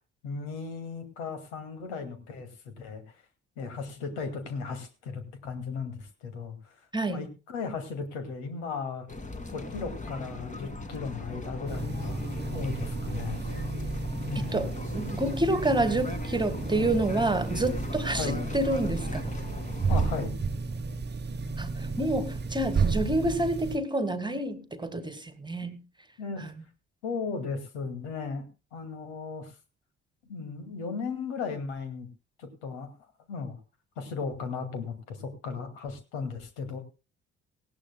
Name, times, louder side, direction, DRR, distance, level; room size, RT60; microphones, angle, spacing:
voice 1, 0.2-3.0 3.6-6.8 7.1-9.1 9.5-13.5 14.3-14.7 18.1-18.4 19.9-20.3 26.2-26.5 27.0-28.5 28.7-29.5 30.2-32.1 32.4-32.9 33.3-33.6 34.0-36.8, left 5 dB, 75° left, 2.3 m, -36 dB
voice 2, 6.9-7.2 14.4-19.4 21.6-25.8, right 1 dB, 15° right, 1.7 m, -28 dB
sound 1, 9.1-20.3, left 2 dB, 20° left, 2.0 m, -38 dB
sound 2, 11.7-23.8, right 4 dB, 30° right, 1.0 m, -32 dB
19.0 x 15.5 x 2.2 m
figure-of-eight pair, 50°, 35 cm